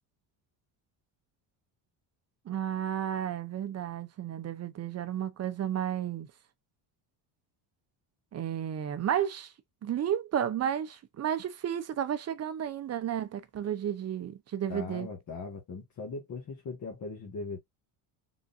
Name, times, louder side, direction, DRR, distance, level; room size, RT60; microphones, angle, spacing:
voice 1, 2.5-6.3 8.3-9.5 9.8-15.1, right 9 dB, 35° right, 0.7 m, -32 dB
voice 2, 14.7-17.6, left 4 dB, 40° left, 1.6 m, -39 dB
3.9 x 3.6 x 2.5 m
cardioid pair, 145°, 46 cm